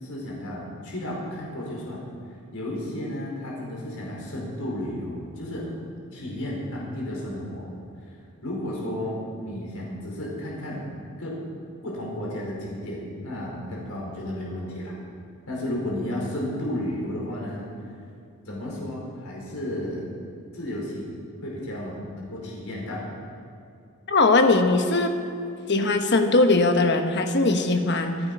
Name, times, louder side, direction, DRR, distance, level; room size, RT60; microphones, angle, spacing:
voice 1, 0.0-2.0 2.5-5.7 6.1-7.7 8.4-10.8 11.2-11.3 11.8-14.9 15.5-17.6 18.4-20.1 20.5-23.0, left 1 dB, 85° left, -3 dB, 4.8 m, -33 dB
voice 2, 24.1-25.1 25.7-28.2, left 2 dB, 55° left, 6 dB, 1.2 m, -20 dB
26.0 x 9.2 x 5.5 m, 2.5 s
head